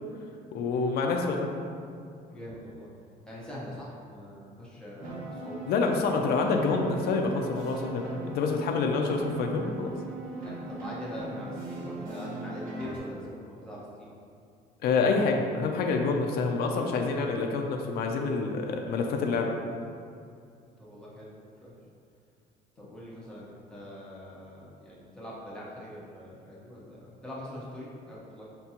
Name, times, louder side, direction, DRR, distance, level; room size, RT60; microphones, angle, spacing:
voice 1, 0.5-1.6 5.7-9.9 14.8-19.5, left 4 dB, 65° left, 2 dB, 0.4 m, -27 dB
voice 2, 2.3-2.9 3.3-6.0 10.4-14.1 20.8-21.3 21.6-21.7 22.8-28.4, equal, 5° left, -7 dB, 1.0 m, -43 dB
sound 1, 5.0-13.0, right 2 dB, 55° right, 1.1 m, -39 dB
5.8 x 2.2 x 2.8 m, 2.4 s
cardioid pair, 110°, 17 cm